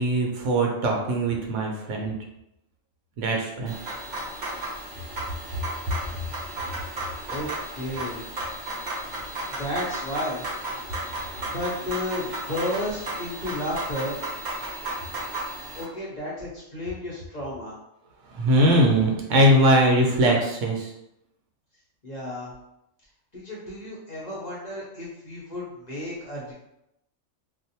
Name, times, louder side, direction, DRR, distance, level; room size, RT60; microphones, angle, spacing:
voice 1, 0.0-2.1 3.2-3.7 18.3-20.9, right 1 dB, 75° right, 0 dB, 0.9 m, -21 dB
sound 1, 3.7-15.8, right 1 dB, 40° right, 0.8 m, -34 dB
voice 2, 7.7-8.2 9.5-10.4 11.4-14.2 15.7-17.7 22.0-22.5 23.3-26.5, left 1 dB, 40° left, -6 dB, 0.7 m, -32 dB
2.5 x 2.1 x 2.7 m, 0.83 s
omnidirectional pair, 1.3 m